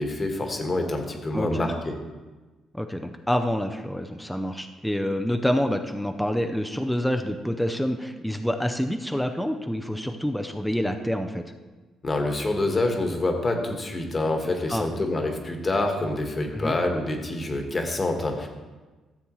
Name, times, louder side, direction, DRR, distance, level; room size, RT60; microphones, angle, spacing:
voice 1, 0.0-1.9 12.0-18.5, left 2 dB, 30° left, 3 dB, 1.4 m, -26 dB
voice 2, 1.3-1.7 2.7-11.4 14.7-14.9 16.5-16.8, equal, 5° left, 6 dB, 0.6 m, -27 dB
13.5 x 7.1 x 3.1 m, 1.2 s
cardioid pair, 90°, 0 cm